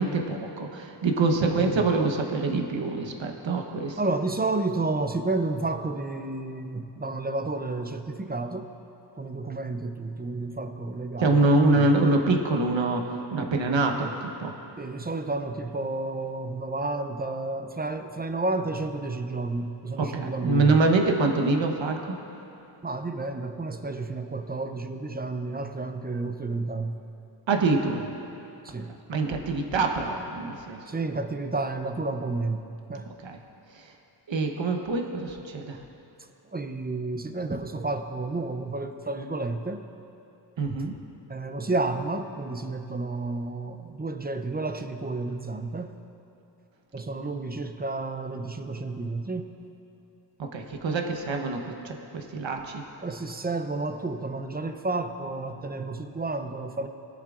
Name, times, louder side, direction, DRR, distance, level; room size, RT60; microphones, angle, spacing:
voice 1, 0.0-4.0 11.2-14.5 20.0-22.1 27.5-28.1 29.1-30.8 33.2-33.4 33.7-33.9 34.3-35.8 40.6-41.0 50.4-52.8, right 3 dB, 70° right, 3 dB, 1.1 m, -25 dB
voice 2, 1.4-1.8 4.0-8.7 9.2-11.9 14.8-20.8 22.8-27.0 28.6-28.9 30.9-33.1 36.5-39.8 41.3-45.9 46.9-49.5 53.0-56.9, right 3 dB, 20° right, 7 dB, 0.5 m, -31 dB
21.0 x 7.4 x 2.5 m, 2.9 s
wide cardioid pair, 85°, 46 cm